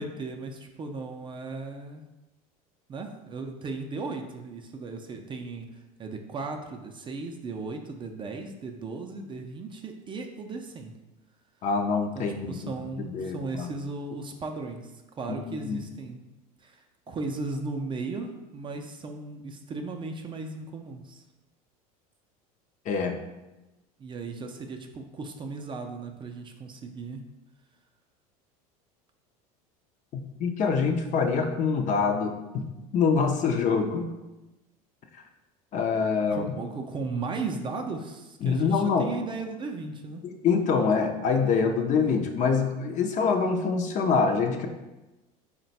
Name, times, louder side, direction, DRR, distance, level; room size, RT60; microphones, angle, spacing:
voice 1, 0.0-2.1 2.9-10.9 12.2-16.2 16.6-21.2 24.0-27.2 36.3-40.2, right 3 dB, 25° right, 4 dB, 0.4 m, -36 dB
voice 2, 11.6-13.7 15.3-15.8 22.9-23.2 30.1-32.6 32.9-34.1 35.7-36.5 38.4-39.1 40.2-44.7, left 5 dB, 40° left, 5 dB, 0.5 m, -25 dB
3.8 x 2.2 x 4.0 m, 1.0 s
supercardioid pair, 95°, 19 cm